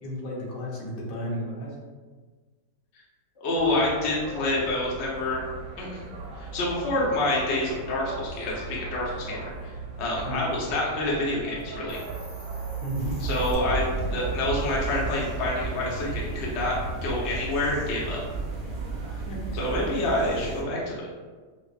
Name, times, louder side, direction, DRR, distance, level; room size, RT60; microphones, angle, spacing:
voice 1, 0.0-1.7 10.2-10.5 12.8-13.2 19.1-19.6, equal, 75° left, -4 dB, 1.5 m, -33 dB
voice 2, 3.4-5.5 5.8-6.0 6.3-12.0 13.2-13.8 14.1-16.8 17.0-18.2 19.5-21.1, left 1 dB, 50° left, -4 dB, 0.9 m, -27 dB
sound 1, 3.5-19.3, right 3 dB, 70° right, 1.2 m, -39 dB
Hiss, 11.9-13.5, equal, 15° right, 1.0 m, -47 dB
sound 2, 13.0-20.6, right 3 dB, 35° right, 0.9 m, -33 dB
5.3 x 2.1 x 2.4 m, 1.4 s
omnidirectional pair, 1.9 m